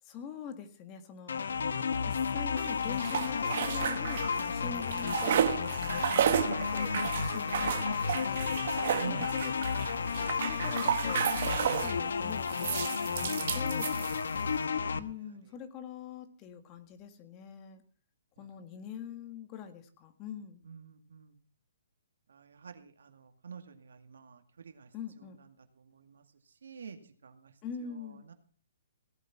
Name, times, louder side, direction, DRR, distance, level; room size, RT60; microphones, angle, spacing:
voice 1, 0.0-1.5 2.1-5.9 6.5-8.6 9.1-9.9 10.4-13.9 14.9-17.8 18.4-20.6 24.9-25.4 27.6-28.3, left 8 dB, 25° left, 8 dB, 1.8 m, -44 dB
sound 1, 1.3-15.0, left 6 dB, 85° left, 1.1 m, -32 dB
voice 2, 1.6-1.9 7.0-7.1 9.0-9.3 14.0-14.5 20.7-21.3 22.3-24.9 25.8-26.2 26.6-27.5, right 6 dB, 80° right, 7 dB, 2.2 m, -47 dB
sound 2, 2.6-4.5 4.8-12.0 12.5-14.5, right 9 dB, 55° right, 1.3 m, -32 dB
17.5 x 8.4 x 5.9 m, 0.43 s
hypercardioid pair, 150°, 0 cm